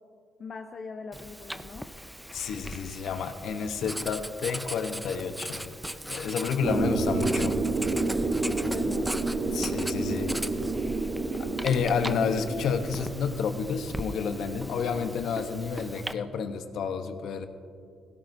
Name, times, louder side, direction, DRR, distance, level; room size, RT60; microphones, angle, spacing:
voice 1, 0.4-1.9 8.2-9.2, left 4 dB, 50° left, 4 dB, 0.7 m, -42 dB
Writing, 1.1-16.1, equal, 5° right, 0.5 m, -39 dB
voice 2, 2.3-5.7 6.1-7.6 9.5-10.3 11.6-17.5, left 6 dB, 75° left, 8 dB, 0.9 m, -30 dB
sound 1, 6.6-14.0, right 3 dB, 45° right, 1.0 m, -29 dB
16.5 x 16.5 x 2.7 m, 2.4 s
cardioid pair, 90°, 0 cm